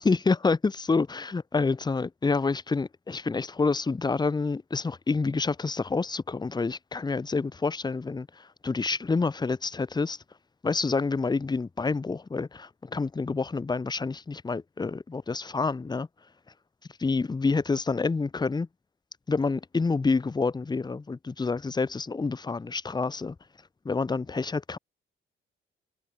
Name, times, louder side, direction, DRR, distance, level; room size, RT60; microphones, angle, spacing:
voice 1, 0.0-10.2 10.6-16.1 17.0-18.7 19.3-23.3 23.8-24.8, left 4 dB, 20° left, 1.0 m, -28 dB
cardioid pair, 120°, 21 cm